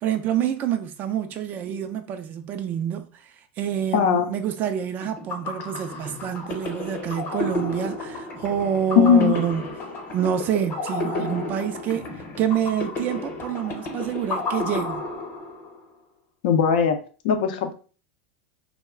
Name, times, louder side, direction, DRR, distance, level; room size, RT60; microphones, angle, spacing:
voice 1, 0.0-9.7 10.1-12.1 12.4-15.0, right 9 dB, 35° right, 0.3 m, -27 dB
voice 2, 3.9-4.3 9.0-9.3 16.4-17.0 17.2-17.7, left 7 dB, 70° left, 0.5 m, -18 dB
sound 1, 5.0-15.8, left 2 dB, 40° left, 0.9 m, -32 dB
2.2 x 2.1 x 3.5 m
supercardioid pair, 125°, 5 cm